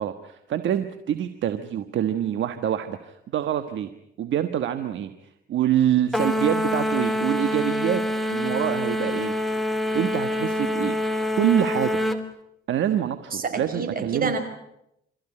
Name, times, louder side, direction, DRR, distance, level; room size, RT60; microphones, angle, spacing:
voice 1, 0.0-3.9 4.2-5.1 5.5-8.0 8.3-9.3 9.9-11.0 11.4-12.0 12.7-14.3, right 10 dB, 70° right, 9 dB, 1.4 m, -25 dB
sound 1, 6.1-12.2, left 1 dB, ahead, 2.8 m, -26 dB
voice 2, 13.3-14.4, right 4 dB, 45° right, 7 dB, 5.5 m, -28 dB
27.5 x 14.5 x 9.9 m, 0.82 s
cardioid pair, 90°, 20 cm